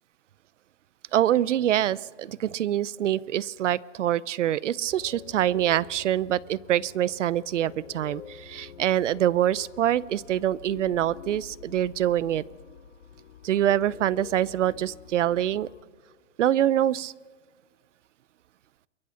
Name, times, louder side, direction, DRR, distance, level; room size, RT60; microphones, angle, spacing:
voice 1, 1.1-12.4 13.4-15.7 16.4-17.1, right 11 dB, 75° right, 23 dB, 0.7 m, -25 dB
sound 1, 4.8-15.8, left 8 dB, 65° left, 1.3 m, -47 dB
22.5 x 22.5 x 5.7 m, 1.5 s
hypercardioid pair, 180°, 37 cm